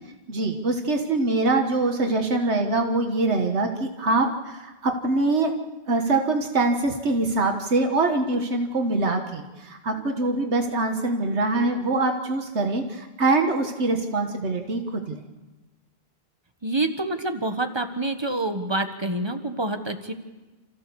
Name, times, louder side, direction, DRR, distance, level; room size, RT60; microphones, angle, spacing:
voice 1, 0.3-5.5 5.9-15.3, right 2 dB, 85° right, 4 dB, 1.8 m, -24 dB
voice 2, 16.6-20.1, right 2 dB, 25° right, 7 dB, 1.4 m, -27 dB
29.5 x 14.5 x 7.1 m, 1.2 s
omnidirectional pair, 1.1 m